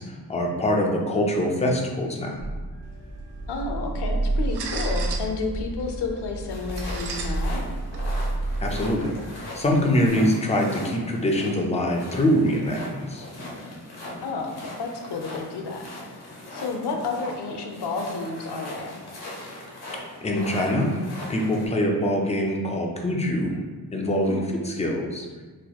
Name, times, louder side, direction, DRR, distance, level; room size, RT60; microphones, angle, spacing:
voice 1, 0.0-2.5 8.6-13.3 20.2-21.0 21.3-23.6 23.9-25.3, equal, 20° left, 0 dB, 0.3 m, -24 dB
sound 1, 2.4-9.2, right 2 dB, 20° right, 0.9 m, -30 dB
sound 2, 2.8-10.1, right 1 dB, 80° right, 0.5 m, -37 dB
voice 2, 3.5-7.6 14.2-19.0 24.3-24.5, left 3 dB, 90° left, 3 dB, 0.6 m, -31 dB
sound 3, 6.5-21.7, left 1 dB, 70° left, 1.0 m, -40 dB
4.0 x 2.9 x 2.3 m, 1.4 s
wide cardioid pair, 170°, 39 cm